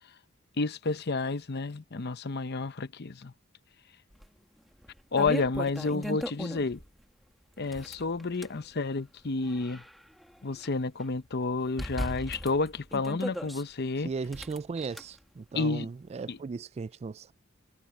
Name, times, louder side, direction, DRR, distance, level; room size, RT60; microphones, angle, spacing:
voice 1, 0.6-3.3 5.1-6.8 7.6-9.8 10.4-14.1 15.5-15.9 16.3-16.4, left 3 dB, 55° left, 0.8 m, -30 dB
sound 1, 4.2-4.3 4.8-6.9 7.6-8.6 9.2-10.7 11.0-11.1 11.8-13.6 14.3-15.0, equal, ahead, 1.9 m, -37 dB
voice 2, 14.0-17.3, right 4 dB, 30° right, 0.3 m, -37 dB
head